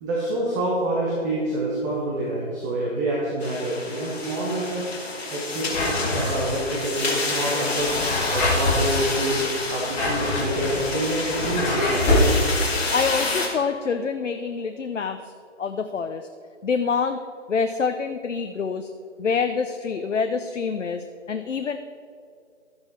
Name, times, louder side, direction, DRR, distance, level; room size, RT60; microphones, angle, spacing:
voice 1, 0.0-4.9 5.3-8.0 8.3-9.4 9.7-12.2, right 1 dB, 15° right, -5 dB, 1.2 m, -27 dB
sound 1, 3.4-13.5, left 3 dB, 55° left, 2.7 m, -29 dB
Drawer open or close, 5.7-6.7 7.7-8.8 9.7-12.3, left 1 dB, 15° left, 2.0 m, -24 dB
voice 2, 12.9-15.3 15.6-16.3 16.6-17.2 17.5-18.9 19.2-21.8, left 5 dB, 80° left, 8 dB, 0.7 m, -26 dB
12.5 x 8.7 x 4.6 m, 2.3 s
figure-of-eight pair, 150°, 37 cm